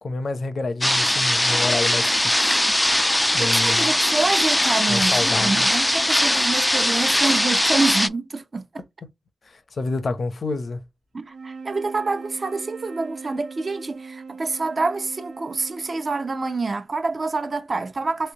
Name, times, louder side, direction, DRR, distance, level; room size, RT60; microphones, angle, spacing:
voice 1, 0.0-2.6 3.3-3.9 4.9-5.7 6.9-7.0 9.0-9.1 9.5-10.8, left 3 dB, 65° left, 0.8 m, -28 dB
sound 1, 0.8-8.1, left 1 dB, 15° left, 0.4 m, -20 dB
voice 2, 3.4-8.8 11.1-18.3, right 3 dB, 55° right, 0.9 m, -27 dB
sound 2, 11.2-16.7, right 4 dB, 85° right, 0.6 m, -40 dB
3.4 x 3.0 x 2.8 m
cardioid pair, 45°, 0 cm